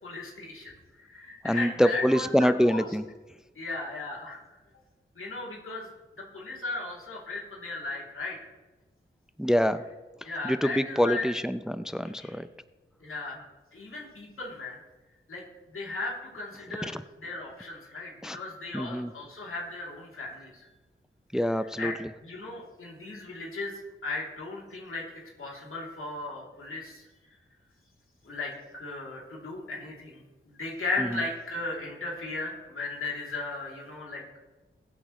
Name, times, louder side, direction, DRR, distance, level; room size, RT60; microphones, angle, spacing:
voice 1, 0.0-0.7 1.0-2.8 3.6-4.4 5.1-5.9 6.2-8.4 10.2-11.3 12.0-12.4 13.0-13.4 13.7-14.8 15.3-15.4 15.7-20.7 21.8-23.7 24.0-25.0 25.4-27.0 28.2-34.4, left 3 dB, 80° left, -3 dB, 3.0 m, -36 dB
voice 2, 1.4-3.0 9.4-9.8 10.4-12.5 16.9-17.0 18.2-18.4 18.7-19.1 21.3-22.1 31.0-31.2, equal, 5° right, 12 dB, 0.5 m, -25 dB
21.0 x 8.5 x 3.1 m, 1.2 s
wide cardioid pair, 60°, 21 cm